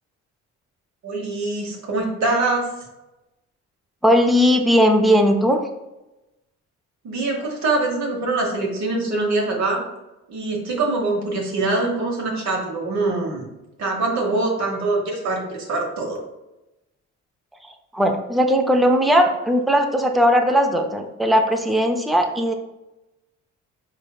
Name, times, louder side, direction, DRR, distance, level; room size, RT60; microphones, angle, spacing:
voice 1, 1.0-2.7 7.0-9.8 10.3-13.4 13.8-16.2, right 2 dB, 65° right, -1 dB, 1.0 m, -23 dB
voice 2, 4.0-5.7 17.6-22.5, equal, ahead, 4 dB, 0.4 m, -18 dB
4.0 x 3.2 x 2.3 m, 0.99 s
cardioid pair, 90°, 30 cm